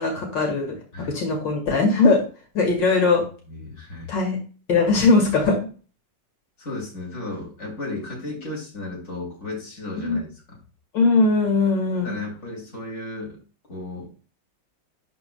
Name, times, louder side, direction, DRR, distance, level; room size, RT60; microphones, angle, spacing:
voice 1, 0.0-0.7 1.1-2.2 2.5-3.2 4.1-4.4 4.7-5.6 10.0-10.2 10.9-12.1, left 3 dB, 85° left, 1 dB, 2.6 m, -20 dB
voice 2, 3.5-4.1 6.6-10.6 11.9-13.4 13.7-14.1, left 2 dB, 40° left, -3 dB, 3.1 m, -34 dB
11.5 x 4.2 x 2.3 m, 0.37 s
omnidirectional pair, 1.9 m